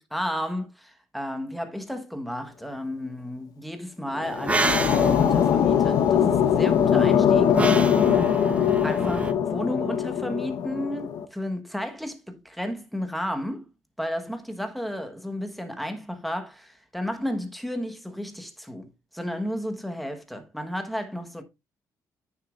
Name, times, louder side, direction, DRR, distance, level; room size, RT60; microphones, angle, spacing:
voice 1, 0.0-7.5 8.8-13.7 14.0-21.4, equal, ahead, 1.2 m, -33 dB
sound 1, 4.1-11.2, left 8 dB, 70° left, 1.0 m, -22 dB
sound 2, 4.3-9.3, right 3 dB, 20° right, 0.7 m, -30 dB
9.4 x 6.7 x 2.5 m
cardioid pair, 115°, 7 cm